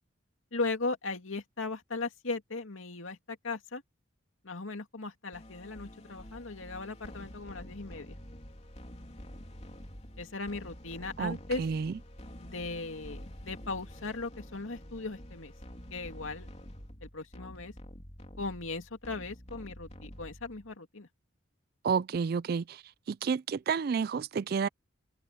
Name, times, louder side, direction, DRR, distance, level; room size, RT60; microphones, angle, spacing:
voice 1, 0.5-3.8 4.4-8.2 10.2-11.6 12.4-15.5 15.9-16.5 17.0-17.7 18.4-21.1, left 3 dB, 85° left, 2.4 m, -38 dB
sound 1, 5.3-20.7, equal, 35° left, 3.4 m, -48 dB
voice 2, 11.2-11.9 21.8-22.8 23.1-24.7, right 6 dB, 50° right, 0.3 m, -30 dB
open air
head